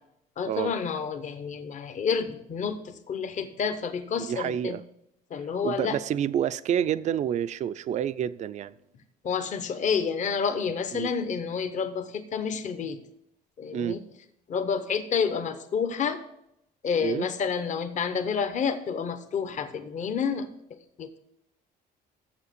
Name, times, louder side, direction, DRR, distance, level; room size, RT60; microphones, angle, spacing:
voice 1, 0.4-4.8 5.3-6.0 9.2-13.0 13.6-14.0 14.5-16.2 16.8-20.5 21.0-21.2, left 6 dB, 45° left, 0.9 m, -29 dB
voice 2, 4.2-4.8 5.6-8.7 10.9-11.1 13.7-14.0 17.0-17.3, right 9 dB, 45° right, 0.4 m, -28 dB
7.3 x 7.0 x 6.7 m
cardioid pair, 110°, 17 cm